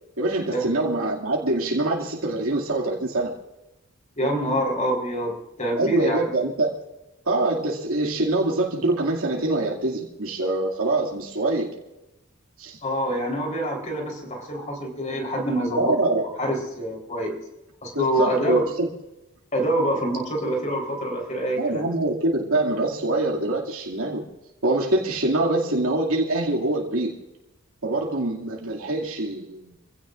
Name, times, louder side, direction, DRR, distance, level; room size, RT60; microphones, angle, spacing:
voice 1, 0.2-3.3 5.8-6.7 7.3-11.7 12.6-12.8 15.8-16.2 17.9-18.9 21.6-24.2 24.6-27.1 27.8-29.7, right 2 dB, 85° right, -2 dB, 2.4 m, -24 dB
voice 2, 4.2-6.3 12.8-17.3 17.8-18.6 19.5-21.8, right 1 dB, 35° left, 1 dB, 4.0 m, -26 dB
26.5 x 16.0 x 2.6 m, 0.97 s
head